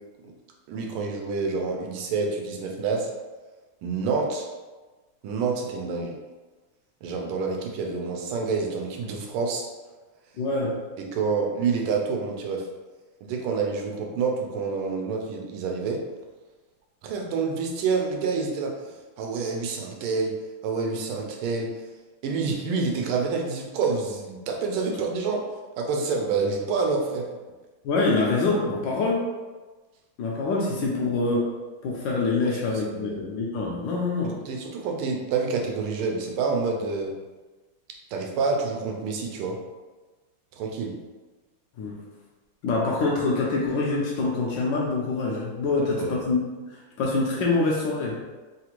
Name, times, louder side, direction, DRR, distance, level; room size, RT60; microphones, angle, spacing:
voice 1, 0.7-3.1 3.8-4.5 5.2-6.1 7.0-9.6 11.0-12.7 13.2-16.0 17.0-18.7 19.2-20.3 20.6-21.9 22.2-25.4 25.8-27.3 32.4-32.6 32.9-33.2 34.2-37.1 38.1-39.6 40.5-41.0 45.8-46.2, right 4 dB, 85° right, 1 dB, 1.5 m, -28 dB
voice 2, 10.4-10.8 27.8-29.3 30.2-31.4 31.8-34.4 41.8-42.0 42.6-46.4 46.7-48.2, left 3 dB, 75° left, -3 dB, 1.1 m, -25 dB
3.8 x 2.4 x 2.9 m, 1.2 s
omnidirectional pair, 2.3 m